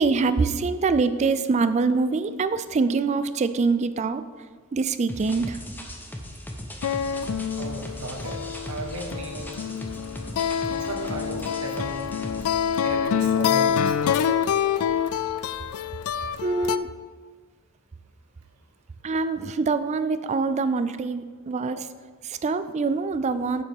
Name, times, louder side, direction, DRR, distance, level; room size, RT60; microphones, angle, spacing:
voice 1, 0.0-4.2 4.7-5.6 16.4-16.9 19.0-21.9 22.2-23.6, right 4 dB, 30° right, 12 dB, 0.3 m, -24 dB
sound 1, 5.1-12.5, left 1 dB, 10° left, 0.8 m, -38 dB
sound 2, 6.8-16.8, left 8 dB, 70° left, 0.3 m, -26 dB
voice 2, 7.6-8.4 8.7-9.7 10.6-12.2 12.7-14.3 21.7-21.8, right 2 dB, 85° right, 3 dB, 1.3 m, -36 dB
9.9 x 7.7 x 3.6 m, 1.5 s
head